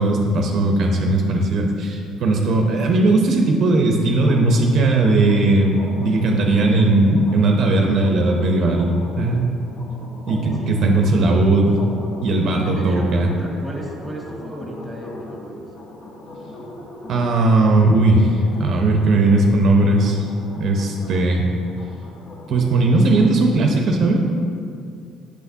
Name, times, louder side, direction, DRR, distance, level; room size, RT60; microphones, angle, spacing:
voice 1, 0.0-9.5 10.3-11.8 12.2-13.3 17.1-20.3 20.5-21.5 22.5-24.2, right 2 dB, 60° right, 2 dB, 0.5 m, -17 dB
sound 1, 4.1-23.3, left 1 dB, 55° left, 1.0 m, -38 dB
voice 2, 10.5-11.1 12.6-15.7, right 1 dB, 10° right, -1 dB, 1.2 m, -34 dB
6.1 x 5.8 x 2.7 m, 2.4 s
supercardioid pair, 85°, 0 cm